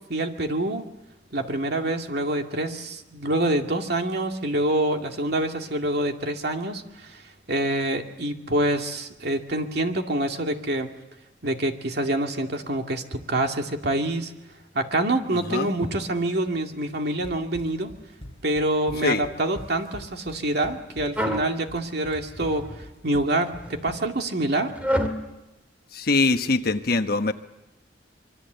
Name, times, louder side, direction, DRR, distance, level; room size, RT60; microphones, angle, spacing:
voice 1, 0.1-0.8 1.3-10.9 11.4-14.3 14.7-17.9 18.4-24.7, right 1 dB, 60° right, 4 dB, 2.3 m, -26 dB
voice 2, 15.3-15.7 19.0-19.2 25.9-27.3, left 3 dB, 55° left, 8 dB, 1.2 m, -23 dB
Run, 17.2-24.3, equal, 30° left, 4.3 m, -43 dB
sound 1, 21.2-21.5 22.1-22.8 23.5-23.8 24.8-25.2, equal, 10° right, 2.5 m, -27 dB
25.5 x 23.5 x 8.1 m, 0.97 s
head